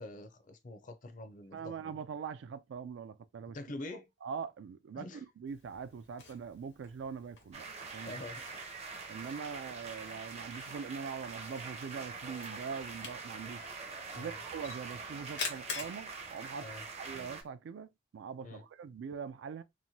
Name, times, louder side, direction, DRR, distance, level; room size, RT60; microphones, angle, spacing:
voice 1, 0.0-1.9 3.5-4.1 5.0-5.2 8.1-8.4 14.1-14.4 16.6-16.8 18.4-18.6, left 2 dB, 45° left, 0.5 m, -45 dB
voice 2, 1.5-3.6 4.2-8.2 9.1-13.6 14.1-16.7 17.0-19.6, right 6 dB, 85° right, 0.3 m, -43 dB
Camera, 5.5-17.5, left 4 dB, 80° left, 1.0 m, -48 dB
sound 1, 7.5-17.4, right 4 dB, 35° right, 0.5 m, -44 dB
2.9 x 2.2 x 2.7 m
head